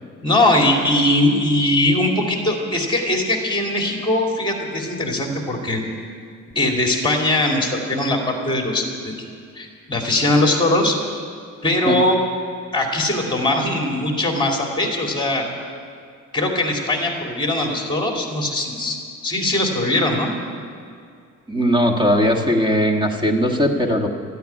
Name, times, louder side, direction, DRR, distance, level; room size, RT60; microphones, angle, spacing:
voice 1, 0.2-5.8 6.5-9.2 9.6-11.0 11.6-12.2 12.7-15.5 16.3-19.0 19.2-20.3, left 1 dB, 15° left, 1 dB, 2.5 m, -20 dB
voice 2, 21.5-24.1, equal, 15° right, 3 dB, 1.5 m, -19 dB
13.5 x 9.4 x 9.9 m, 2.3 s
cardioid pair, 125°, 30 cm